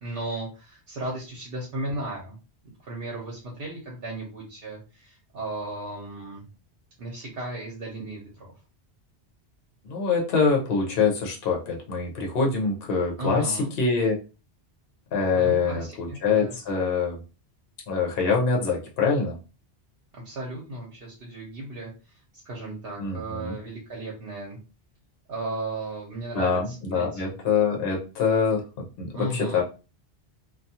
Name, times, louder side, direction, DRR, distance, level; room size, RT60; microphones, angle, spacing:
voice 1, 0.0-2.4 2.8-6.5 7.0-8.5 13.2-13.7 15.3-16.5 20.1-21.9 22.3-24.6 25.3-27.2 29.1-29.6, right 1 dB, 65° right, -4 dB, 0.9 m, -35 dB
voice 2, 9.8-14.2 15.1-17.2 17.9-19.4 23.0-23.6 26.3-29.6, left 5 dB, 70° left, -1 dB, 0.9 m, -25 dB
2.3 x 2.3 x 2.7 m, 0.32 s
omnidirectional pair, 1.1 m